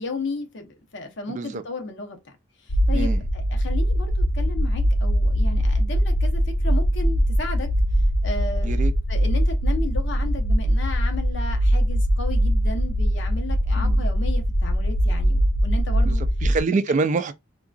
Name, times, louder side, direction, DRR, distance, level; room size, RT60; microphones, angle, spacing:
voice 1, 0.0-2.4 2.6-7.7 8.2-8.8 9.1-16.2, left 3 dB, 65° left, 0.9 m, -34 dB
voice 2, 1.3-1.6 2.9-3.2 8.6-8.9 13.7-14.1 16.0-17.3, right 4 dB, 40° right, 0.3 m, -26 dB
sound 1, 2.7-16.6, equal, 85° left, 0.6 m, -21 dB
3.7 x 2.4 x 2.3 m
head